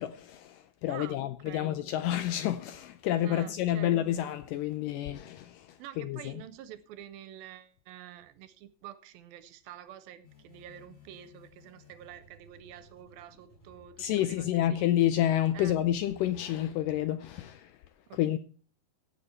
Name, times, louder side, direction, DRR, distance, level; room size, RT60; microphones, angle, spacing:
voice 1, 0.0-6.4 14.0-17.7 18.1-18.4, left 12 dB, 85° left, 1.9 m, -29 dB
voice 2, 0.9-1.7 3.2-4.0 5.8-14.8 15.5-15.8 18.1-18.2, right 11 dB, 80° right, 2.4 m, -48 dB
sound 1, 10.2-17.1, left 3 dB, 45° left, 7.8 m, -58 dB
16.0 x 7.1 x 4.3 m
omnidirectional pair, 4.5 m